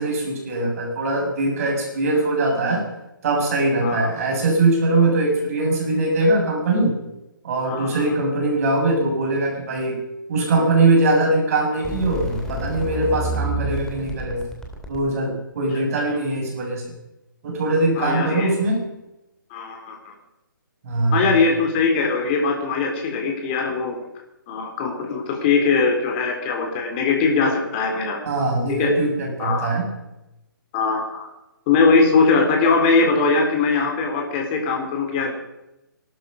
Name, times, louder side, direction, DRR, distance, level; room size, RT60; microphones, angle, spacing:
voice 1, 0.0-2.9 3.2-7.0 7.4-10.0 10.3-14.5 14.9-16.9 17.4-18.8 20.8-21.3 28.3-29.9, right 2 dB, 45° right, 0 dB, 6.9 m, -21 dB
voice 2, 7.6-8.1 18.0-18.5 19.5-20.1 21.1-24.0 24.5-28.2 28.7-28.9 29.4-29.7 30.7-31.3 31.7-35.3, left 4 dB, 30° left, 2 dB, 4.1 m, -21 dB
sound 1, 11.8-15.0, right 1 dB, 5° left, 2.7 m, -29 dB
20.5 x 13.0 x 5.5 m, 0.93 s
figure-of-eight pair, 135°, 11 cm